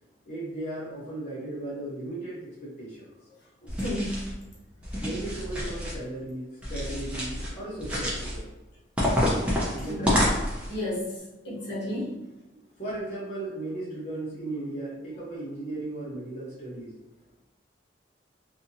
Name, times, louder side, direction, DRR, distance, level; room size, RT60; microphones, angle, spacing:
voice 1, 0.3-3.1 5.0-8.5 9.7-10.3 11.9-12.0 12.5-16.9, right 2 dB, 35° left, -9 dB, 0.7 m, -36 dB
voice 2, 3.6-4.3 9.9-10.2 10.7-11.1 11.4-12.1, left 1 dB, 65° left, -7 dB, 1.0 m, -32 dB
sound 1, 3.7-4.3 4.8-6.0 6.6-7.5 7.8-8.4 9.0-10.7, left 1 dB, 5° right, 0.5 m, -28 dB
2.6 x 2.5 x 2.6 m, 1.1 s
head